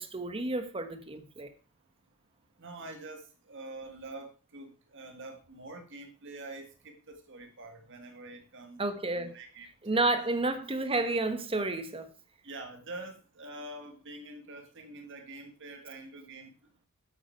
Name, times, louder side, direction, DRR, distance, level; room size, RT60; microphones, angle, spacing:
voice 1, 0.0-1.5 8.8-9.3 9.8-12.1, right 2 dB, 25° right, 1.2 m, -31 dB
voice 2, 2.6-8.8 9.1-9.7 12.4-16.5, right 2 dB, 60° right, 1.8 m, -45 dB
8.9 x 8.2 x 4.5 m
head